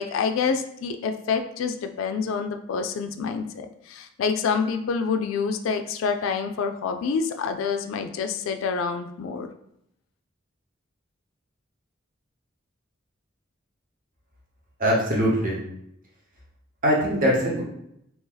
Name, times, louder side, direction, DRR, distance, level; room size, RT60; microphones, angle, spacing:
voice 1, 0.0-9.5, left 5 dB, 90° left, 6 dB, 0.3 m, -27 dB
voice 2, 14.8-15.6 16.8-17.6, equal, 45° right, -3 dB, 1.0 m, -22 dB
2.9 x 2.7 x 3.8 m, 0.76 s
head